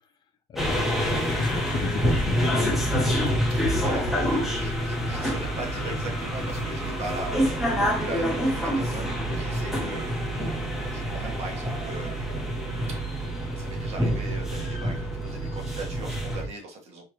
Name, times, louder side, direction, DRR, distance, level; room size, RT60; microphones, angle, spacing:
voice 1, 0.5-3.3, left 7 dB, 30° left, 7 dB, 0.4 m, -35 dB
sound 1, 0.6-16.5, equal, ahead, 1.0 m, -27 dB
voice 2, 3.5-12.5 12.9-13.0 13.6-17.1, right 2 dB, 45° right, 1 dB, 1.2 m, -39 dB
4.7 x 2.4 x 3.0 m, 0.32 s
cardioid pair, 165°, 14 cm